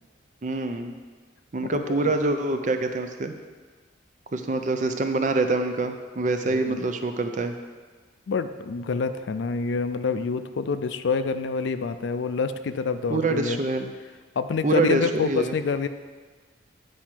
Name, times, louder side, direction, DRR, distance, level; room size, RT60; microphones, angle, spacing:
voice 1, 0.4-0.9 1.5-3.3 4.3-7.5 13.1-13.9 14.6-15.5, right 2 dB, 40° right, 7 dB, 0.5 m, -25 dB
voice 2, 1.6-2.1 6.5-6.8 8.3-13.6 14.4-15.9, left 4 dB, 70° left, 11 dB, 0.4 m, -27 dB
9.1 x 4.8 x 4.5 m, 1.5 s
head